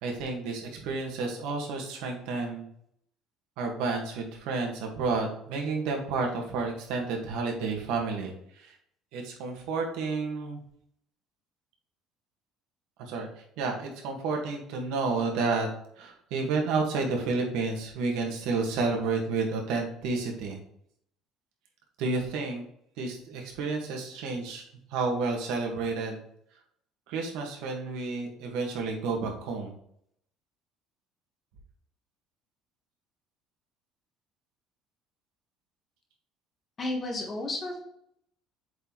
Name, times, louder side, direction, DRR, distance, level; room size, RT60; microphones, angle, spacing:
voice 1, 0.0-2.7 3.6-8.8 9.1-10.6 13.0-13.3 13.6-15.7 16.0-20.6 22.0-22.6 23.0-24.6 24.9-26.2 27.1-29.7, right 4 dB, 80° right, 1 dB, 1.6 m, -30 dB
voice 2, 36.8-37.8, left 2 dB, 25° left, 2 dB, 1.2 m, -32 dB
7.9 x 4.1 x 3.1 m, 0.71 s
cardioid pair, 170°, 0 cm